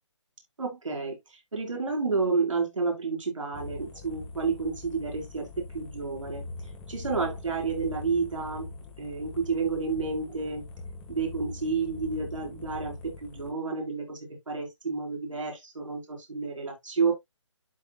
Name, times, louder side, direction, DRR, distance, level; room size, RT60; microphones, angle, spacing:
voice 1, 0.6-6.4 6.9-8.7 9.0-10.6 11.1-14.2 14.5-17.1, right 4 dB, 85° right, 4.3 m, -30 dB
sound 1, 3.5-13.5, left 3 dB, 5° left, 1.5 m, -42 dB
12.0 x 4.4 x 2.3 m
hypercardioid pair, 175°, 16 cm